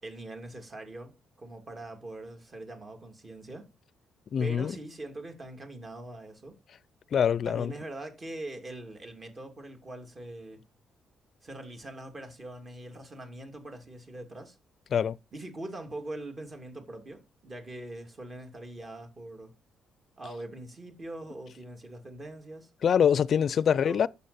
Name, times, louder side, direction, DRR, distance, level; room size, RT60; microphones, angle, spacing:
voice 1, 0.0-3.7 4.4-6.6 7.4-10.6 11.4-14.6 15.3-19.5 20.2-22.7 23.8-24.1, right 1 dB, 35° right, 2.6 m, -42 dB
voice 2, 4.3-4.7 7.1-7.7 14.9-15.2 22.8-24.1, left 8 dB, 55° left, 0.4 m, -24 dB
10.0 x 7.3 x 4.2 m
cardioid pair, 90°, 0 cm